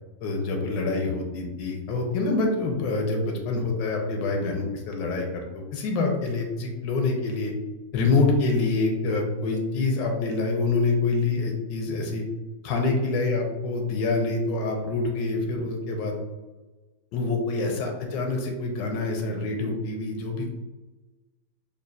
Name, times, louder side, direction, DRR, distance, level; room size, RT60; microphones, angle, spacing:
voice 1, 0.2-7.5 7.9-12.2 12.6-16.1 17.1-20.5, left 3 dB, 80° left, 2 dB, 1.3 m, -26 dB
5.2 x 2.4 x 2.4 m, 1.2 s
omnidirectional pair, 1.9 m